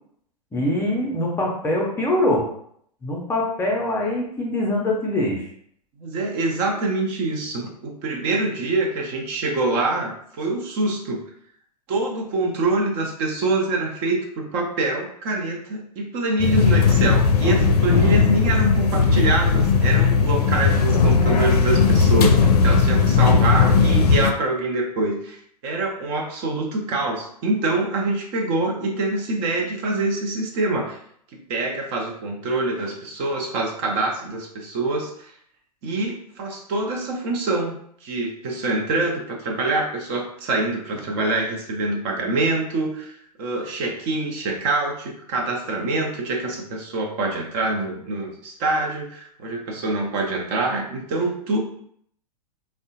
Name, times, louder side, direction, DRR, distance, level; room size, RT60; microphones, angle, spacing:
voice 1, 0.5-2.5 3.0-5.5, left 1 dB, 15° left, -2 dB, 0.6 m, -23 dB
voice 2, 6.0-11.2 11.9-22.4 22.6-25.4 25.6-31.0 31.5-35.3 35.8-37.7 38.0-51.6, right 2 dB, 40° right, 0 dB, 0.6 m, -25 dB
sound 1, 16.4-24.3, left 5 dB, 70° left, 0.4 m, -17 dB
3.4 x 2.1 x 2.7 m, 0.66 s
figure-of-eight pair, 105°, 20 cm